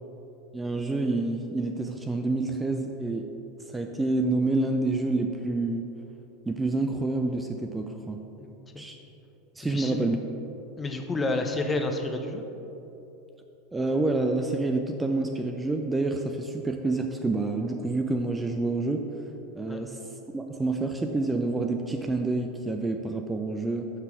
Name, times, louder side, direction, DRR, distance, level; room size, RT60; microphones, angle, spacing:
voice 1, 0.5-3.3 3.7-5.8 6.5-8.2 8.8-9.0 9.6-10.2 13.7-19.1 19.6-20.0 20.3-23.9, right 2 dB, 15° right, 4 dB, 0.4 m, -28 dB
voice 2, 8.4-8.8 9.7-10.3 10.8-12.4 19.7-19.9, left 2 dB, 20° left, 5 dB, 0.7 m, -30 dB
5.7 x 5.7 x 4.6 m, 3.0 s
hypercardioid pair, 85°, 0 cm